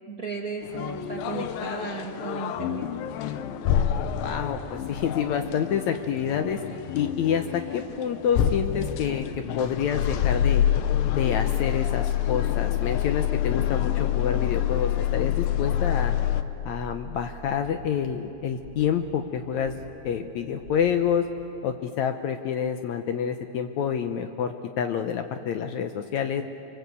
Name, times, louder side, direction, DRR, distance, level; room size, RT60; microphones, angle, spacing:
voice 1, 0.1-2.9, right 4 dB, 55° right, 1 dB, 1.0 m, -35 dB
sound 1, 0.6-16.4, left 11 dB, 90° left, 2.7 m, -27 dB
voice 2, 4.2-6.6 6.9-9.3 9.6-10.7 11.1-16.1 16.7-21.3 21.6-26.4, left 8 dB, 75° left, 7 dB, 1.8 m, -28 dB
sound 2, 17.4-18.0 18.4-19.0 19.4-20.0 20.4-21.0 21.4-21.5, left 3 dB, 40° left, 1.6 m, -47 dB
29.0 x 23.5 x 8.2 m, 2.9 s
omnidirectional pair, 4.0 m